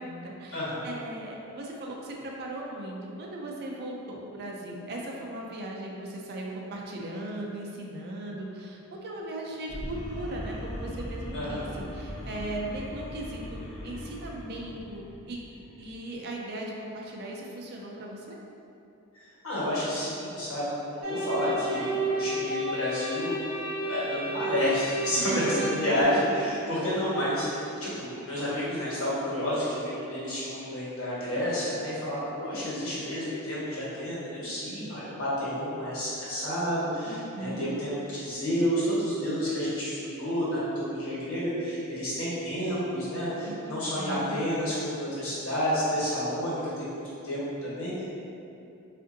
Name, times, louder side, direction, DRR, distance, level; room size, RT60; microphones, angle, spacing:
voice 1, 0.0-11.7 11.9-15.4 15.8-18.4 25.2-26.2 37.1-37.8 43.4-44.5, right 1 dB, 50° right, -1 dB, 0.4 m, -38 dB
voice 2, 0.5-0.8 11.3-11.7 19.4-23.4 23.8-48.0, equal, 65° left, -9 dB, 1.2 m, -30 dB
sound 1, 9.7-16.0, equal, 30° left, 0.4 m, -39 dB
sound 2, 21.0-26.0, right 1 dB, 90° right, 0.7 m, -31 dB
3.6 x 2.5 x 2.6 m, 2.7 s
head